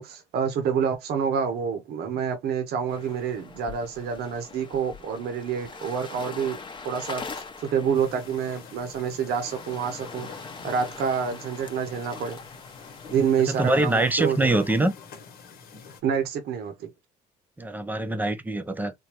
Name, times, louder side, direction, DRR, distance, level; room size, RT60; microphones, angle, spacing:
voice 1, 0.0-6.6 6.8-10.3 10.6-12.4 13.1-14.5 16.0-16.9, right 7 dB, 70° right, 0.9 m, -27 dB
sound 1, 2.9-14.8, left 4 dB, 30° left, 0.7 m, -43 dB
sound 2, 7.9-16.0, left 5 dB, 65° left, 1.1 m, -46 dB
voice 2, 13.5-14.9 17.6-18.9, right 2 dB, 10° right, 0.6 m, -24 dB
3.7 x 2.2 x 3.0 m
cardioid pair, 110°, 17 cm